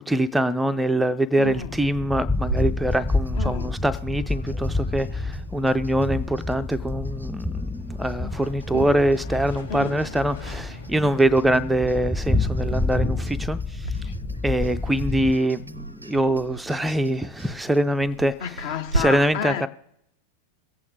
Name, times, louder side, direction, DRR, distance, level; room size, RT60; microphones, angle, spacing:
voice 1, 0.0-14.1 14.4-18.3 18.9-19.7, right 1 dB, 5° right, 0.4 m, -24 dB
voice 2, 1.4-1.7 3.4-3.7 8.7-9.0 9.7-9.9 14.0-14.1 18.4-19.7, left 7 dB, 50° left, 1.0 m, -31 dB
sound 1, 1.5-15.3, left 2 dB, 15° left, 0.8 m, -29 dB
sound 2, 2.3-19.0, right 3 dB, 90° right, 0.6 m, -39 dB
sound 3, 7.7-13.6, left 3 dB, 75° left, 1.6 m, -47 dB
23.0 x 8.4 x 3.6 m
figure-of-eight pair, 90°, 0 cm